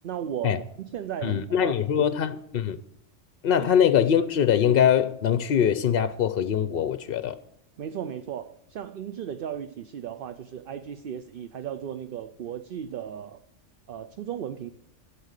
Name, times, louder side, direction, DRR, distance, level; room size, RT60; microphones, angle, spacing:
voice 1, 0.0-2.1 3.6-3.7 7.8-13.4 13.9-14.7, right 9 dB, 55° right, 0.7 m, -36 dB
voice 2, 1.2-2.8 3.4-7.4, left 9 dB, 60° left, 0.7 m, -23 dB
12.0 x 8.5 x 6.5 m
omnidirectional pair, 1.2 m